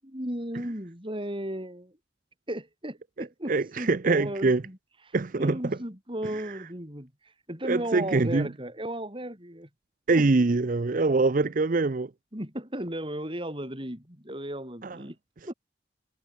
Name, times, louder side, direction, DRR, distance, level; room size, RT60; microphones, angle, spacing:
voice 1, 0.0-1.9 2.5-4.8 5.1-9.7 10.2-10.3 12.3-15.2 15.5-15.6, right 1 dB, 30° right, 7.7 m, -35 dB
voice 2, 3.2-4.6 5.1-5.8 6.3-6.4 7.6-8.5 10.1-12.1 14.8-15.0, right 3 dB, 45° right, 0.6 m, -24 dB
head